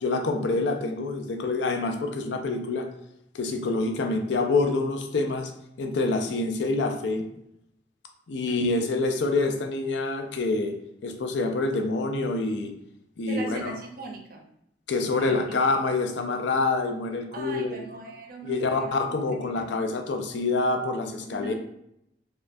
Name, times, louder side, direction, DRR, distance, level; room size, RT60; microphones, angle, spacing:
voice 1, 0.0-2.9 3.3-5.5 5.8-7.2 8.3-10.7 11.0-12.7 13.2-13.7 14.9-17.8 18.4-21.5, left 3 dB, 80° left, 5 dB, 0.5 m, -26 dB
voice 2, 8.5-8.8 13.3-14.4 15.1-15.6 17.3-19.6 21.3-21.5, right 3 dB, 55° right, 2 dB, 0.6 m, -39 dB
4.3 x 2.3 x 2.6 m, 0.79 s
head